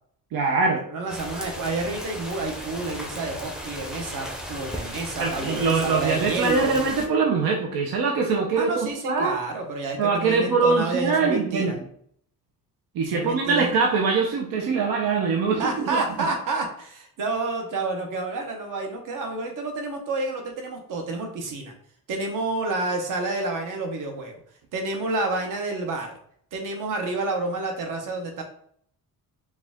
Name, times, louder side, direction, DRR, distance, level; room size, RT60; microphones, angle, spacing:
voice 1, 0.3-0.8 5.2-9.4 10.0-11.8 12.9-16.0, right 4 dB, 85° right, 1 dB, 0.7 m, -23 dB
voice 2, 0.9-6.8 8.6-11.7 13.0-13.7 15.6-21.7 22.1-24.4 24.7-26.1 26.5-28.4, right 3 dB, 65° right, 3 dB, 1.0 m, -29 dB
sound 1, 1.1-7.1, equal, ahead, 0.5 m, -36 dB
4.8 x 2.4 x 3.5 m, 0.64 s
cardioid pair, 165°, 35 cm